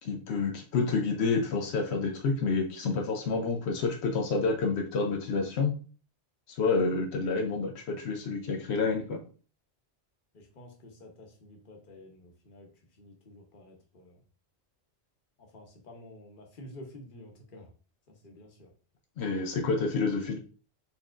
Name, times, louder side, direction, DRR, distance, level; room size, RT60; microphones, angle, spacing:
voice 1, 0.0-5.7 6.5-9.2 19.2-20.4, left 4 dB, 85° left, 3 dB, 0.9 m, -29 dB
voice 2, 10.3-14.2 15.4-17.7 18.1-18.7 19.3-19.6, left 1 dB, 55° left, 1 dB, 1.1 m, -50 dB
4.3 x 3.5 x 2.4 m, 0.37 s
omnidirectional pair, 1.1 m